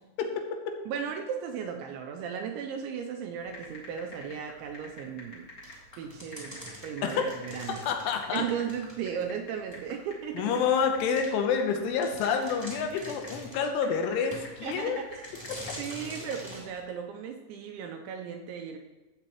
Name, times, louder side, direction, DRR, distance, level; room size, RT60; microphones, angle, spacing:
voice 1, 0.9-5.5 6.0-7.8 8.3-10.5 14.6-15.5 15.8-18.8, right 7 dB, 80° right, 3 dB, 2.8 m, -36 dB
sound 1, 3.4-16.9, left 2 dB, 40° left, 1.9 m, -48 dB
sound 2, 5.6-9.3 9.7-9.8 10.5-10.6 11.2-11.3 11.7-11.8 12.0-13.7 14.3-14.8 15.2-16.7, equal, 5° left, 1.5 m, -44 dB
voice 2, 7.9-8.4 10.4-15.0, left 6 dB, 80° left, 4 dB, 3.1 m, -28 dB
14.5 x 7.8 x 3.0 m, 1.1 s
omnidirectional pair, 5.8 m